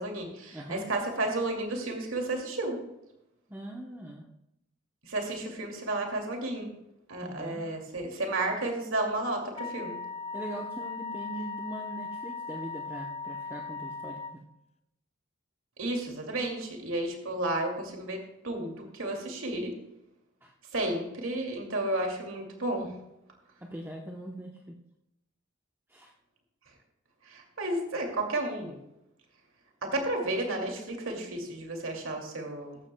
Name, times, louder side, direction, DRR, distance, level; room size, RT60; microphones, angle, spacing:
voice 1, 0.0-2.8 5.0-6.7 7.1-10.0 15.8-19.7 20.7-22.9 27.3-28.8 29.8-32.8, right 2 dB, 85° right, 1 dB, 2.6 m, -32 dB
voice 2, 0.5-0.9 3.5-4.3 7.2-7.7 10.3-14.4 20.4-20.5 23.6-24.8 25.9-26.1, right 1 dB, 10° right, 0 dB, 0.9 m, -41 dB
Wind instrument woodwind instrument, 9.6-14.4, left 4 dB, 30° left, 0.8 m, -38 dB
15.0 x 13.0 x 2.3 m, 0.84 s
head